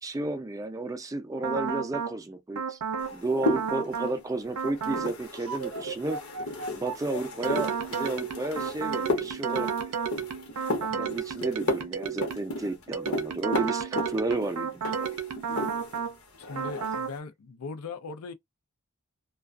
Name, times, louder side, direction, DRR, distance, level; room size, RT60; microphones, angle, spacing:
voice 1, 0.0-2.8 3.1-6.2 6.7-9.7 11.0-15.0, right 2 dB, 15° right, 0.4 m, -32 dB
sound 1, 1.4-2.2 2.6-3.1 3.4-4.2 4.6-5.1 5.5-12.5 12.9-16.2 16.6-17.1, right 6 dB, 85° right, 0.5 m, -32 dB
sound 2, 3.0-16.1 16.3-17.0, left 2 dB, 65° left, 0.9 m, -34 dB
voice 2, 10.9-11.2 16.4-18.3, left 4 dB, 85° left, 0.5 m, -40 dB
2.4 x 2.3 x 2.3 m
head